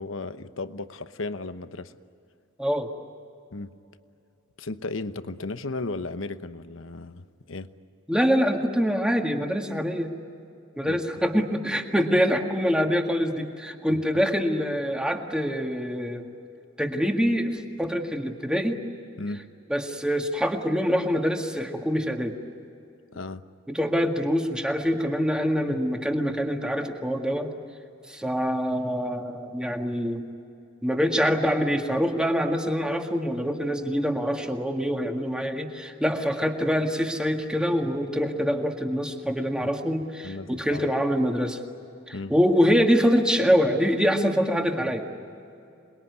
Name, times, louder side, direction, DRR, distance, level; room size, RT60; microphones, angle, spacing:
voice 1, 0.0-1.9 3.5-3.7 4.6-7.7 10.8-11.0 11.3-11.4 13.9-14.0 19.2-19.5 23.1-23.4 40.2-40.9 42.1-42.4, left 3 dB, 70° left, 11 dB, 1.0 m, -35 dB
voice 2, 8.1-10.1 10.8-16.2 16.8-18.8 19.7-22.4 23.7-27.5 28.1-30.2 30.8-41.6 42.1-45.1, equal, 5° right, 3 dB, 1.9 m, -25 dB
27.5 x 21.0 x 9.6 m, 2.6 s
head